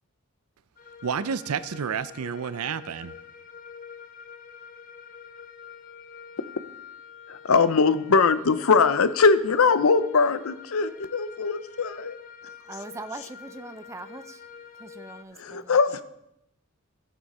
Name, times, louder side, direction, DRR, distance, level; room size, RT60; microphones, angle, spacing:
sound 1, 0.8-15.2, left 7 dB, 40° left, 0.7 m, -46 dB
voice 1, 1.0-3.1, right 6 dB, 80° right, 15 dB, 0.5 m, -30 dB
voice 2, 7.3-12.2 15.4-16.0, left 4 dB, 70° left, 14 dB, 0.6 m, -21 dB
voice 3, 12.7-14.4 14.8-16.0, right 2 dB, 15° right, 11 dB, 0.4 m, -41 dB
14.5 x 6.2 x 4.2 m, 0.83 s
head